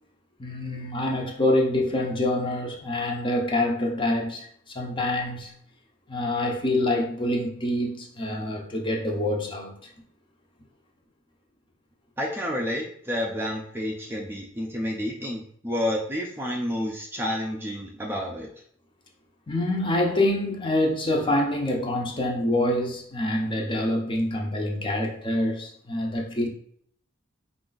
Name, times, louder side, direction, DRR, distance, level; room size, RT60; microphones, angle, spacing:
voice 1, 0.4-5.5 6.1-9.7 19.5-26.5, left 1 dB, 25° left, 0.7 m, -26 dB
voice 2, 12.2-18.5, equal, 10° right, 0.5 m, -30 dB
4.8 x 2.5 x 3.9 m
head